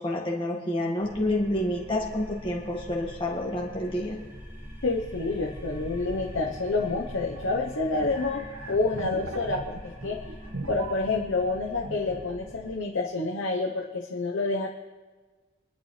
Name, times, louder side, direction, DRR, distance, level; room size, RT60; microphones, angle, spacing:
voice 1, 0.0-4.2, left 1 dB, 25° left, -3 dB, 1.9 m, -28 dB
sound 1, 1.0-12.8, equal, 10° right, 2.2 m, -43 dB
voice 2, 4.8-10.2 10.7-14.7, left 3 dB, 60° left, -1 dB, 1.0 m, -28 dB
sound 2, 7.3-11.5 11.8-12.3, right 2 dB, 85° right, 1.5 m, -39 dB
25.0 x 11.5 x 3.3 m, 1.4 s
head